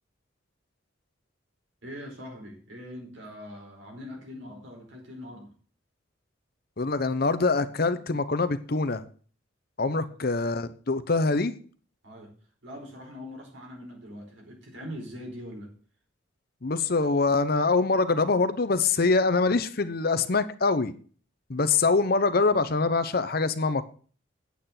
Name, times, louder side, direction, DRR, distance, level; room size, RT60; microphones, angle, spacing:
voice 1, 1.8-5.5 9.9-10.0 12.0-12.3 12.6-15.7, equal, 75° right, 1 dB, 4.6 m, -42 dB
voice 2, 6.8-9.0 9.8-11.5 16.6-20.9 21.5-23.9, left 3 dB, 50° left, 12 dB, 0.8 m, -24 dB
9.2 x 8.5 x 5.8 m, 0.42 s
head